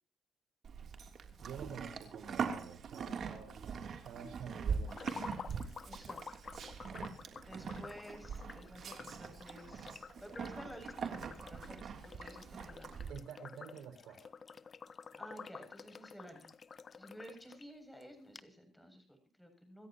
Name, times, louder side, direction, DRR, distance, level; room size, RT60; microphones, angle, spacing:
Livestock farm animals working animals, 0.6-13.1, right 6 dB, 60° right, 3.2 m, -42 dB
voice 1, 1.4-5.2 13.1-14.3, right 7 dB, 85° right, 5 dB, 6.0 m, -49 dB
sound 1, 4.9-17.6 18.0-18.1 18.4-18.5, left 5 dB, 40° left, 0.9 m, -51 dB
voice 2, 5.9-6.4 7.4-13.0 15.1-16.5 17.0-19.9, equal, 5° left, 5 dB, 7.5 m, -53 dB
26.5 x 14.0 x 3.0 m, 0.34 s
cardioid pair, 90°, 0 cm